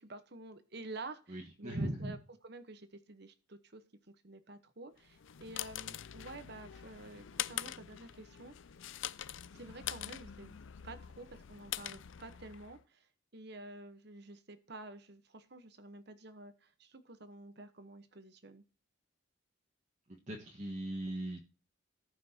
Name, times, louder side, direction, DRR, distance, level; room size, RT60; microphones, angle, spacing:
voice 1, 0.0-2.2 2.4-8.5 9.5-13.1 13.3-18.6, right 2 dB, 55° right, 10 dB, 1.1 m, -50 dB
voice 2, 1.3-2.2 20.1-21.4, right 1 dB, 35° right, 0 dB, 1.5 m, -39 dB
sound 1, 5.1-12.8, left 11 dB, 65° left, 0.5 m, -44 dB
18.0 x 6.0 x 2.9 m, 0.37 s
head